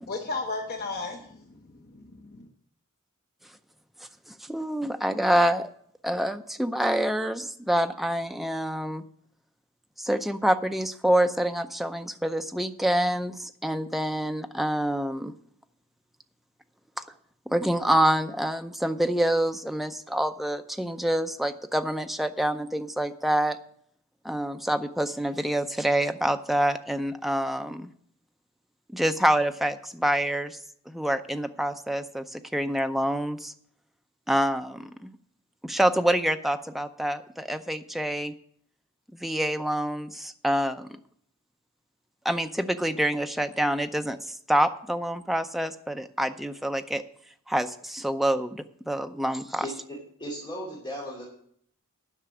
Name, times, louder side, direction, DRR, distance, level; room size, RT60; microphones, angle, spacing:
voice 1, 0.0-2.5, left 3 dB, 45° left, 3 dB, 1.0 m, -35 dB
voice 2, 4.4-5.7 6.0-9.0 10.0-15.3 17.5-23.6 24.2-27.9 28.9-30.6 30.9-33.5 34.3-35.1 35.6-38.3 39.1-41.0 42.2-47.0 47.5-49.7, right 1 dB, ahead, 7 dB, 0.5 m, -26 dB
voice 3, 49.9-51.2, equal, 20° left, -4 dB, 2.7 m, -37 dB
11.0 x 5.9 x 8.3 m, 0.64 s
head